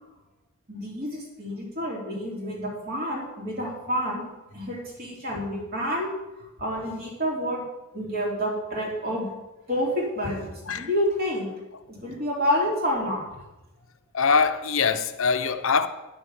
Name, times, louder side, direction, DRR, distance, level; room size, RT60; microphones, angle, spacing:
voice 1, 0.7-4.3 4.5-6.1 6.6-7.6 7.9-9.3 9.7-11.5 11.9-13.2, equal, 45° right, 3.0 m, -28 dB
voice 2, 14.1-15.9, left 5 dB, 60° left, 0.7 m, -23 dB
10.0 x 7.0 x 7.2 m
head